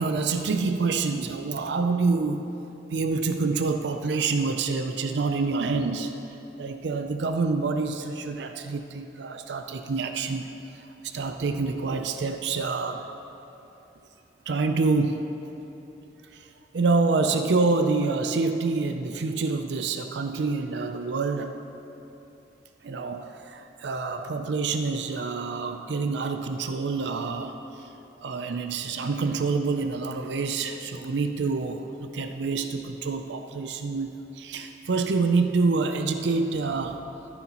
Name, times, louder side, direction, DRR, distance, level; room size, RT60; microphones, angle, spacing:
voice 1, 0.0-2.4 2.9-6.1 6.6-10.5 11.1-13.1 14.5-15.2 16.3-16.4 16.7-21.5 22.8-27.6 28.2-37.0, right 4 dB, 75° right, 6 dB, 0.5 m, -27 dB
14.0 x 9.9 x 3.0 m, 3.0 s
head